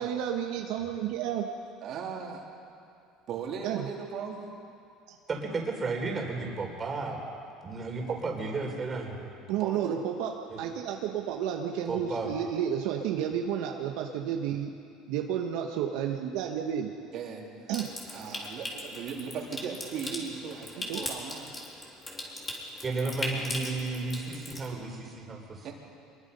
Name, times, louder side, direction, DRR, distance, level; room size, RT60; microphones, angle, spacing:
voice 1, 0.0-1.4 3.6-3.9 5.1-5.2 9.5-14.7 15.1-16.9 17.7-17.9 20.9-21.0, right 9 dB, 75° right, 2 dB, 1.4 m, -31 dB
voice 2, 1.8-2.5 3.3-4.4 8.1-8.2 9.6-10.0 17.1-17.7 18.1-21.5 23.3-23.5 25.6-25.7, right 6 dB, 55° right, 0 dB, 3.6 m, -38 dB
voice 3, 5.3-7.2 7.6-9.3 10.5-10.6 11.9-12.3 22.8-25.7, right 3 dB, 25° right, 1 dB, 4.1 m, -33 dB
Water tap faucet / Sink (filling or washing) / Trickle dribble, 17.7-24.7, left 1 dB, 20° left, 3.6 m, -39 dB
24.5 x 22.0 x 5.6 m, 2.5 s
cardioid pair, 125°, 0 cm